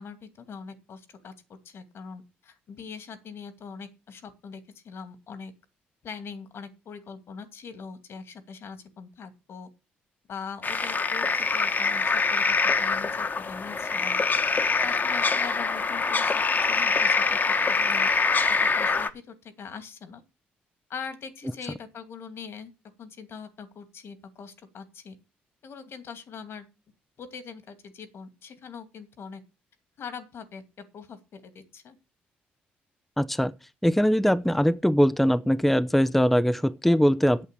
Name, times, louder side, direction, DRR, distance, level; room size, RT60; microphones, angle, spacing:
voice 1, 0.0-5.5 6.0-9.7 10.3-14.2 14.5-17.4 17.6-18.1 18.5-20.2 20.9-22.7 23.0-25.2 25.6-26.7 27.2-29.4 30.0-32.0, left 6 dB, 60° left, 2.4 m, -42 dB
sound 1, 10.6-19.1, left 4 dB, 40° left, 1.4 m, -24 dB
voice 2, 33.2-33.5 33.8-37.5, equal, 5° left, 0.7 m, -21 dB
8.5 x 8.0 x 6.8 m
hypercardioid pair, 50°, 5 cm